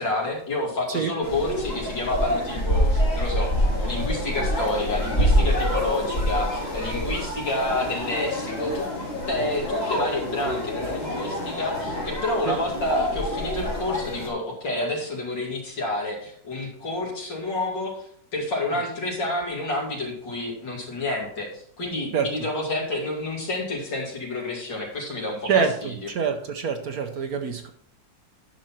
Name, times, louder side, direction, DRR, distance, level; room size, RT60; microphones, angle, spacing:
voice 1, 0.0-3.5 3.8-8.9 9.3-18.0 18.3-26.1, left 2 dB, 75° left, -1 dB, 3.1 m, -29 dB
sound 1, 1.2-14.3, equal, 35° left, 2.5 m, -26 dB
voice 2, 25.4-27.7, right 6 dB, 65° right, 7 dB, 1.1 m, -25 dB
10.0 x 6.4 x 4.3 m, 0.64 s
omnidirectional pair, 2.0 m